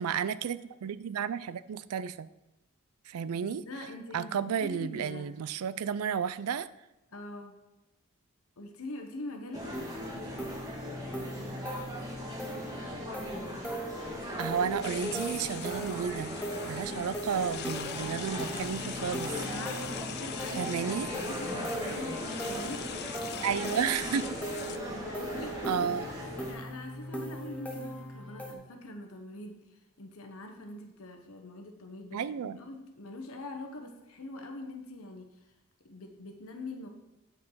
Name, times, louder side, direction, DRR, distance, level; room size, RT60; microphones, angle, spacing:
voice 1, 0.0-2.3 3.1-3.6 4.1-6.7 14.4-16.4 16.6-19.3 20.6-21.1 23.4-24.3 25.7-26.1 32.1-32.6, right 7 dB, 80° right, 16 dB, 0.4 m, -32 dB
voice 2, 3.4-5.3 7.1-7.6 8.6-10.7 19.3-23.1 24.6-25.9 26.4-35.5 35.8-36.9, left 2 dB, 70° left, 4 dB, 1.0 m, -43 dB
sound 1, 9.5-26.5, left 1 dB, 15° right, 1.5 m, -39 dB
sound 2, 9.7-28.5, right 1 dB, 5° left, 0.9 m, -41 dB
sound 3, 14.8-24.8, left 9 dB, 45° left, 0.4 m, -42 dB
8.5 x 4.7 x 5.5 m, 0.97 s
head